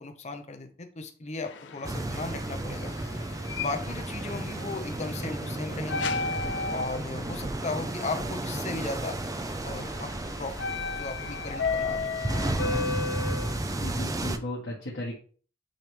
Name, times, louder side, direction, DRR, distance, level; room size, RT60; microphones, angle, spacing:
voice 1, 0.0-2.9 3.6-6.1 6.7-9.2 9.6-10.1 10.4-10.6 10.9-12.2, left 3 dB, 40° left, 7 dB, 0.8 m, -36 dB
sound 1, 1.4-14.0, left 4 dB, 70° left, 0.5 m, -35 dB
sound 2, 1.8-14.4, right 2 dB, 20° right, 0.4 m, -33 dB
voice 2, 13.8-15.2, left 1 dB, 85° left, -5 dB, 1.9 m, -35 dB
8.8 x 3.4 x 3.4 m, 0.43 s
head